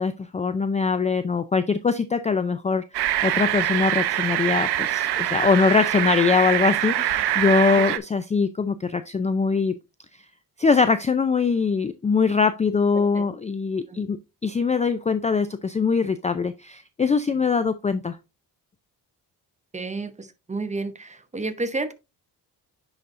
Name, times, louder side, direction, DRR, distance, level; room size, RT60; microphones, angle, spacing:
voice 1, 0.0-2.8 3.2-9.7 10.6-14.2 14.4-18.2, left 5 dB, 20° left, 0.3 m, -22 dB
sound 1, 2.9-8.0, right 12 dB, 75° right, 0.7 m, -24 dB
voice 2, 12.9-13.2 13.9-14.0 19.7-21.9, right 3 dB, 15° right, 0.8 m, -31 dB
10.0 x 4.1 x 2.5 m
cardioid pair, 85°, 40 cm